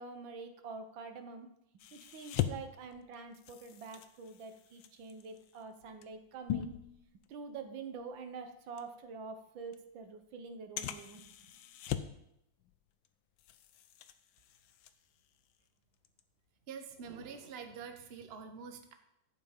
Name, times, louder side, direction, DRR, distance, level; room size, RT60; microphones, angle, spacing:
voice 1, 0.0-1.5 1.9-6.7 7.3-11.2, right 4 dB, 85° right, 7 dB, 1.8 m, -46 dB
sound 1, 1.8-7.6 8.0-8.2 8.8-8.9 9.7-9.8 10.8-12.3 12.6-13.1 13.4-15.6 15.9-16.2, left 11 dB, 85° left, 1.5 m, -41 dB
voice 2, 16.7-18.9, right 6 dB, 40° right, 6 dB, 1.1 m, -46 dB
11.5 x 8.1 x 5.1 m, 0.80 s
omnidirectional pair, 2.1 m